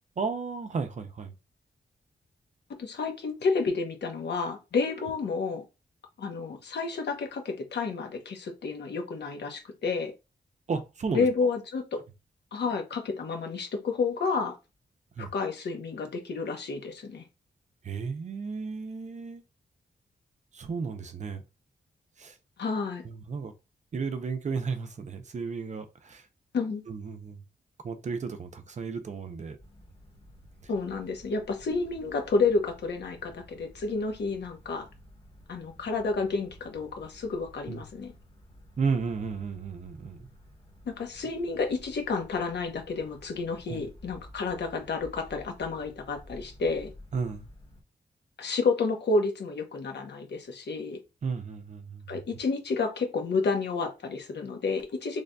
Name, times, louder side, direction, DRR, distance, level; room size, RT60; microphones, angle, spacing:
voice 1, 0.2-1.3 10.7-11.3 15.2-15.3 17.8-19.4 20.5-21.4 22.2-22.4 23.0-23.5 23.9-26.3 26.9-27.4 27.8-29.6 37.7-37.8 38.8-40.3 43.7-43.8 47.1-47.5 51.2-52.2, right 5 dB, 40° right, 0.5 m, -33 dB
voice 2, 2.8-5.6 6.2-10.1 11.1-12.0 12.5-14.6 15.2-17.2 22.6-23.0 26.5-26.8 30.7-34.9 35.5-38.1 40.9-46.9 48.4-51.0 52.1-55.2, left 4 dB, 75° left, 0.9 m, -30 dB
sound 1, 29.6-47.8, equal, 35° left, 1.2 m, -52 dB
3.8 x 3.3 x 2.2 m
wide cardioid pair, 180°, 18 cm